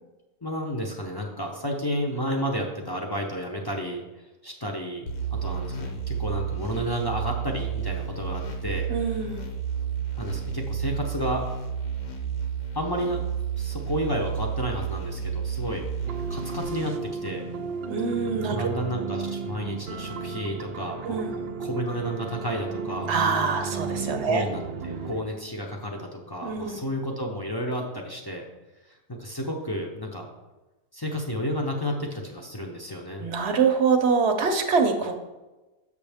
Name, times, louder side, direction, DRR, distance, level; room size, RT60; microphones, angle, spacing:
voice 1, 0.4-4.0 4.4-8.9 10.2-11.5 12.7-13.2 13.6-15.8 16.3-17.4 18.5-23.1 24.1-28.5 28.9-30.3 30.9-33.3, equal, 25° left, 0 dB, 0.5 m, -31 dB
sound 1, 5.1-16.6, right 7 dB, 60° left, 1.1 m, -31 dB
voice 2, 8.9-9.5 17.9-18.6 21.0-21.5 23.1-24.5 26.4-26.8 33.2-35.2, right 5 dB, 55° right, 5 dB, 0.9 m, -24 dB
sound 2, 16.0-25.2, right 5 dB, 80° right, 0.5 m, -34 dB
6.8 x 6.3 x 3.5 m, 1.1 s
omnidirectional pair, 1.5 m